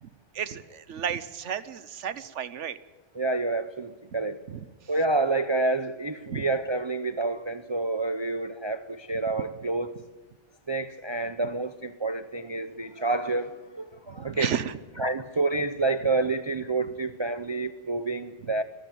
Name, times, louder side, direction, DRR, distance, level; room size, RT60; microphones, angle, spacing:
voice 1, 0.0-2.8 4.5-4.9 6.3-6.4 9.3-9.4 14.1-15.1, right 8 dB, 75° right, 15 dB, 1.2 m, -33 dB
voice 2, 3.2-4.4 4.9-9.9 10.7-14.5 15.0-18.6, right 3 dB, 30° right, 11 dB, 0.6 m, -28 dB
22.0 x 13.5 x 9.2 m, 1.3 s
omnidirectional pair, 1.3 m